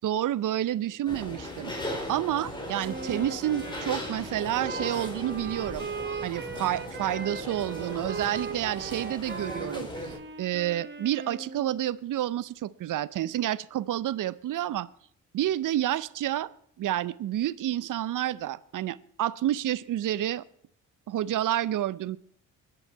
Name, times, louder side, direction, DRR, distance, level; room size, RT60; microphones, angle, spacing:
voice 1, 0.0-1.7 2.1-5.9 6.2-14.9 15.3-16.5 16.8-20.4 21.1-22.2, right 12 dB, 55° right, 20 dB, 0.6 m, -29 dB
sound 1, 1.1-10.2, left 1 dB, 10° left, 4.1 m, -38 dB
Wind instrument woodwind instrument, 2.8-11.8, right 4 dB, 30° right, 1.4 m, -39 dB
20.5 x 7.0 x 4.6 m, 0.67 s
supercardioid pair, 55°, 38 cm